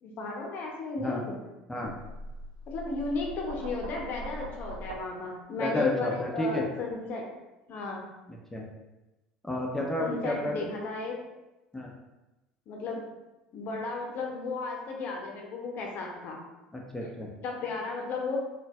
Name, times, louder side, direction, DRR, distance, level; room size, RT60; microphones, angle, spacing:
voice 1, 0.0-1.4 2.7-7.3 7.7-8.1 10.0-11.2 12.7-13.0 13.5-16.4 17.4-18.4, left 3 dB, 50° left, 0 dB, 0.6 m, -34 dB
sound 1, 1.8-5.0, right 1 dB, 80° right, 0.4 m, -41 dB
voice 2, 5.6-6.6 8.3-8.6 9.4-10.7 11.7-11.9 16.7-17.3, left 1 dB, 5° left, -1 dB, 0.5 m, -31 dB
3.9 x 2.2 x 2.2 m, 1.0 s
hypercardioid pair, 70°, 4 cm